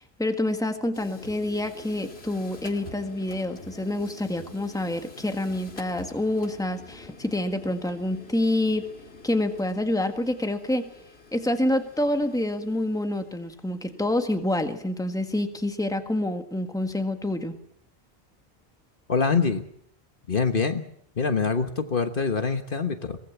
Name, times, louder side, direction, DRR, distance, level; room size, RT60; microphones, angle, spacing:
voice 1, 0.0-8.9 9.2-10.9 11.3-17.6, left 1 dB, 5° left, 6 dB, 1.6 m, -27 dB
sound 1, 0.9-15.2, left 3 dB, 80° left, 2.4 m, -47 dB
voice 2, 19.1-19.6 20.3-20.8 21.2-23.2, left 5 dB, 60° left, 8 dB, 1.5 m, -24 dB
23.0 x 18.5 x 7.1 m, 0.71 s
omnidirectional pair, 1.0 m